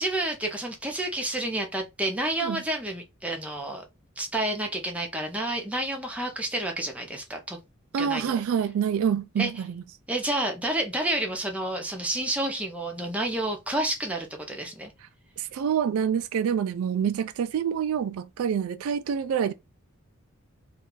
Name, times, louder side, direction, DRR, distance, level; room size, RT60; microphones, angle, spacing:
voice 1, 0.0-3.8 4.2-7.6 8.0-8.4 9.4-9.6 10.1-14.9, right 1 dB, 5° right, 0.6 m, -30 dB
voice 2, 7.9-9.7 15.4-19.5, right 7 dB, 75° right, 0.3 m, -26 dB
2.6 x 2.3 x 3.7 m
head